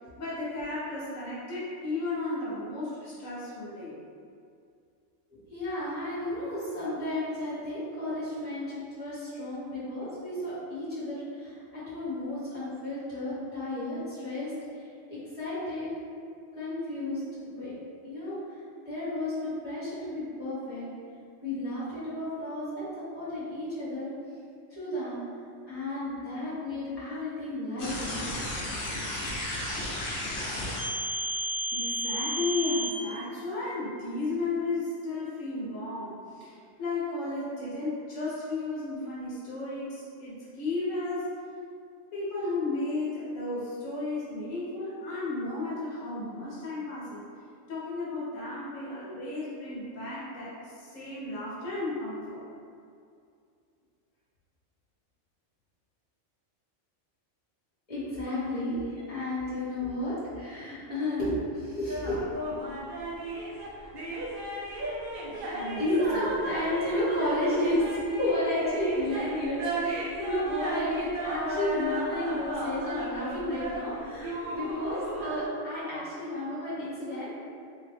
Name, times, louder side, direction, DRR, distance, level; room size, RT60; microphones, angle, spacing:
voice 1, 0.2-4.0 31.7-41.3 42.1-47.2 47.7-52.4 65.3-66.3, left 2 dB, 90° left, -7 dB, 1.4 m, -34 dB
voice 2, 5.3-14.5 15.1-15.9 16.5-17.2 17.6-17.7 18.0-18.4 18.8-20.9 21.4-22.9 23.1-24.1 24.7-25.2 25.7-28.2 57.9-62.2 65.6-77.4, left 1 dB, 30° left, -11 dB, 1.7 m, -32 dB
sound 1, 27.8-32.9, equal, 65° left, 1.1 m, -32 dB
sound 2, 61.9-75.5, right 1 dB, 55° right, 0.7 m, -35 dB
3.7 x 3.0 x 3.4 m, 2.4 s
omnidirectional pair, 1.3 m